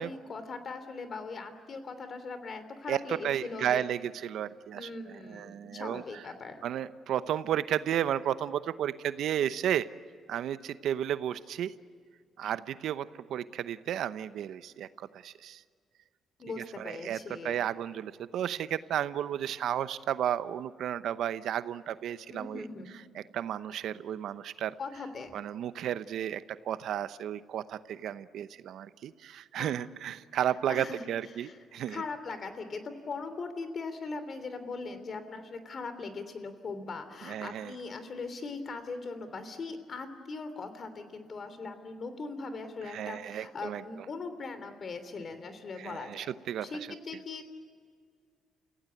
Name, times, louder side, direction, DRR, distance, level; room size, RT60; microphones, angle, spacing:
voice 1, 0.0-3.8 4.7-6.7 16.4-17.6 22.3-22.9 24.8-25.4 29.6-29.8 30.7-31.0 31.3-31.6 31.9-46.3 46.6-47.5, left 4 dB, 45° left, 10 dB, 3.1 m, -40 dB
voice 2, 2.9-4.9 5.3-6.2 6.6-9.9 10.3-11.7 12.4-15.6 16.8-17.2 17.4-22.6 23.1-24.7 25.3-32.0 37.2-37.7 42.9-43.8 45.8-46.7, right 10 dB, 75° right, 14 dB, 0.8 m, -33 dB
29.5 x 16.5 x 9.6 m, 2.1 s
cardioid pair, 90°, 0 cm